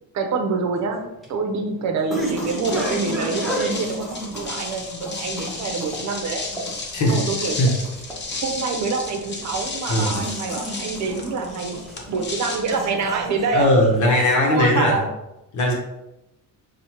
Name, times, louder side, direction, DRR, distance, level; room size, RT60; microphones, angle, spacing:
voice 1, 0.1-6.4 7.1-7.7 8.4-13.7 14.4-15.1, right 4 dB, 50° right, 4 dB, 0.8 m, -26 dB
sound 1, 0.8-14.3, right 1 dB, ahead, 1.1 m, -33 dB
sound 2, 2.2-13.6, left 3 dB, 30° left, 0.8 m, -33 dB
voice 2, 6.9-7.8 9.9-10.2 13.5-15.0 15.5-15.7, left 1 dB, 55° left, -1 dB, 1.1 m, -19 dB
6.2 x 2.4 x 2.9 m, 0.94 s
cardioid pair, 115°, 35 cm